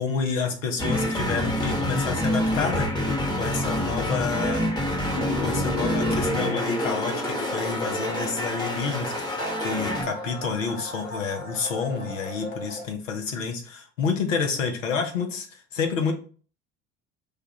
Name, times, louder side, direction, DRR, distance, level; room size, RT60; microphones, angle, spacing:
voice 1, 0.0-2.9 3.4-4.7 5.4-16.1, left 5 dB, 80° left, 4 dB, 0.8 m, -29 dB
sound 1, 0.8-10.0, left 1 dB, 10° left, 1.0 m, -27 dB
sound 2, 5.1-12.8, left 1 dB, 60° left, 1.3 m, -33 dB
4.8 x 2.3 x 3.0 m, 0.41 s
figure-of-eight pair, 60°, 38 cm